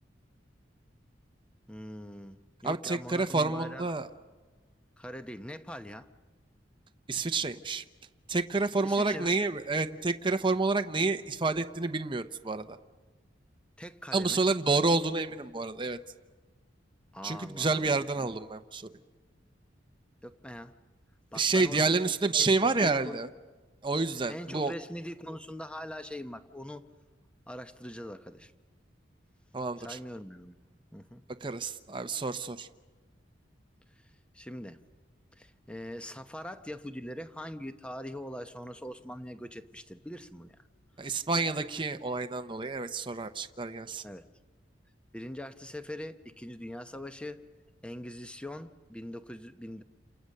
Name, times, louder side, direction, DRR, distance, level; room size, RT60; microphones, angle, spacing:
voice 1, 1.7-3.8 5.0-6.1 8.8-9.4 13.8-14.4 17.1-17.9 20.2-20.7 21.3-21.8 22.0-23.2 24.3-26.8 27.5-28.5 29.8-30.6 30.9-31.2 34.3-34.8 35.4-40.6 44.0-44.3 45.1-47.4 47.8-49.8, left 1 dB, 5° left, 9 dB, 0.9 m, -42 dB
voice 2, 2.6-4.1 7.1-7.8 8.3-12.8 14.1-16.0 17.2-18.9 21.3-23.3 23.8-24.7 29.5-30.0 31.4-32.7 41.0-44.0, right 3 dB, 25° right, 7 dB, 0.8 m, -29 dB
29.5 x 28.0 x 6.6 m, 1.3 s
head